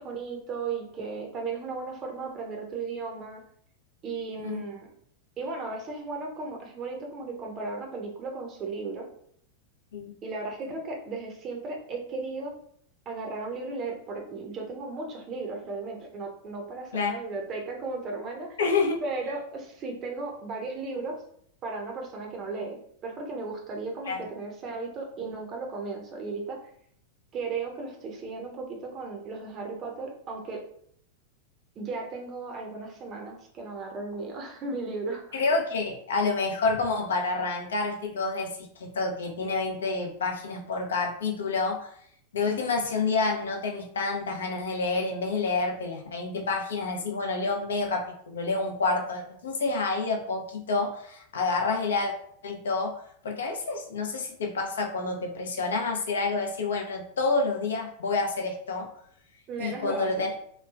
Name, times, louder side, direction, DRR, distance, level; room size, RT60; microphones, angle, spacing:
voice 1, 0.0-3.4 4.0-4.9 5.4-9.1 10.2-12.5 13.1-18.6 19.0-21.1 21.6-26.6 27.3-30.6 31.8-35.4 59.5-60.4, right 3 dB, 30° right, 1 dB, 0.6 m, -35 dB
voice 2, 18.6-19.0 24.1-24.2 35.3-41.9 42.3-52.1 52.4-52.9 53.2-58.9 59.6-60.3, left 3 dB, 65° left, 2 dB, 0.5 m, -28 dB
3.0 x 2.2 x 2.4 m, 0.66 s
figure-of-eight pair, 90°, 0 cm